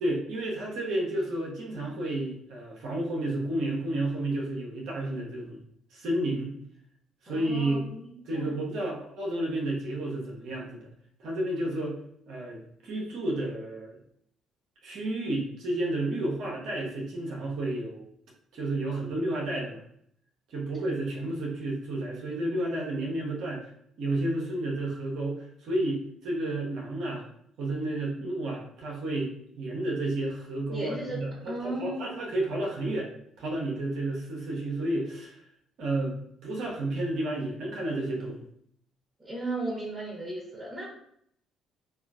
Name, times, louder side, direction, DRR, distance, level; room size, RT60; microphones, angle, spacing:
voice 1, 0.0-5.6 5.9-6.6 7.2-7.8 8.3-10.9 11.2-12.0 12.3-14.0 14.8-18.1 18.5-19.8 20.5-23.7 24.0-27.2 27.6-33.1 33.4-35.4 35.8-38.4, right 1 dB, 70° right, -3 dB, 0.8 m, -31 dB
voice 2, 7.3-8.5 30.7-31.2 31.5-32.2 39.2-40.9, right 1 dB, 30° right, -5 dB, 1.2 m, -36 dB
3.6 x 2.4 x 2.3 m, 0.68 s
hypercardioid pair, 55°, 0 cm